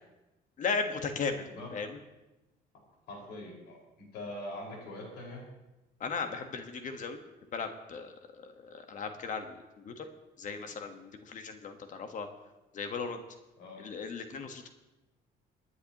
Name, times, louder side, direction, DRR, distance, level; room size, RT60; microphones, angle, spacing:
voice 1, 0.6-1.4 1.7-2.0 6.0-7.2 7.5-9.6 9.8-10.1 10.4-12.3 12.7-13.2 13.8-14.7, left 5 dB, 50° left, 6 dB, 1.3 m, -36 dB
voice 2, 3.1-5.4 10.7-10.8 13.6-13.9, left 1 dB, 85° left, -2 dB, 5.0 m, -43 dB
25.0 x 9.9 x 3.0 m, 1.0 s
cardioid pair, 110°, 17 cm